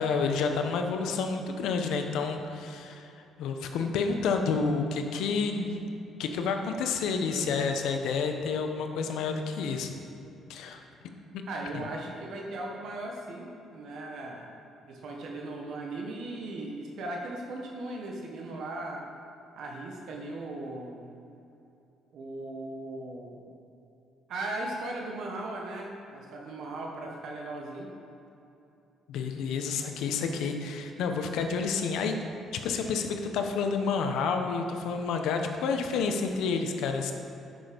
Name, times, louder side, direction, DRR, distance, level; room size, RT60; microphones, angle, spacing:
voice 1, 0.0-3.1 3.4-5.8 6.2-9.9 10.5-10.8 11.3-11.4 11.7-11.8 29.1-32.2 32.6-37.1, left 5 dB, 80° left, 5 dB, 0.9 m, -29 dB
voice 2, 11.5-14.5 14.9-19.1 19.6-21.0 22.1-23.5 24.3-27.9, right 2 dB, 65° right, 0 dB, 1.2 m, -38 dB
9.3 x 6.4 x 5.1 m, 2.8 s
cardioid pair, 140°, 0 cm